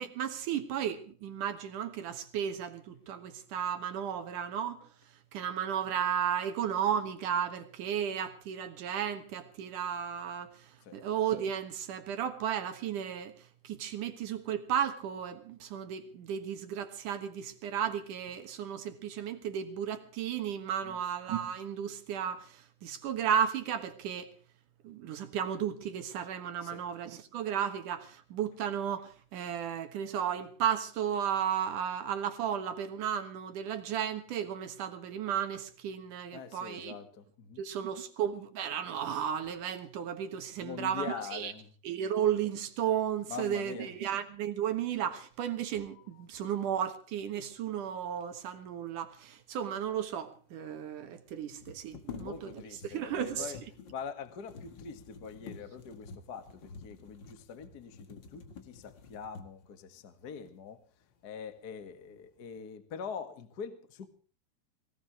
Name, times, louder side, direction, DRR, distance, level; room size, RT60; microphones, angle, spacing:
voice 1, 0.0-4.8 5.3-10.5 10.9-13.3 13.6-24.3 24.8-37.0 37.6-41.5 41.8-52.5 52.8-53.5, right 9 dB, 60° right, 2.5 m, -34 dB
voice 2, 36.3-37.6 40.6-41.7 43.3-43.9 45.9-46.2 52.1-53.6 53.9-60.8 61.2-64.1, left 6 dB, 50° left, 1.2 m, -44 dB
sound 1, 50.0-50.1 50.2-50.3 51.4-59.8 60.4-60.6 61.0-61.6 62.0-62.5, left 5 dB, 80° left, 1.0 m, -49 dB
23.0 x 17.5 x 3.3 m
omnidirectional pair, 4.8 m